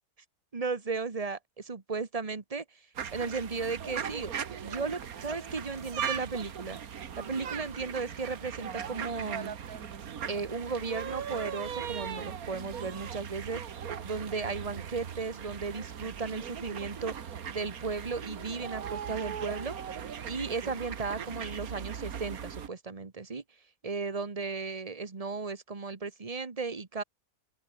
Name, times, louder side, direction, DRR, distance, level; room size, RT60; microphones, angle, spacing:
voice 1, 0.5-2.6 3.1-4.3 4.6-6.8 7.2-9.6 10.3-13.6 14.0-17.1 17.5-19.8 20.3-23.4 23.8-27.0, right 4 dB, 25° right, 1.4 m, -35 dB
sound 1, 2.9-22.7, right 8 dB, 80° right, 1.8 m, -39 dB
open air
omnidirectional pair, 1.5 m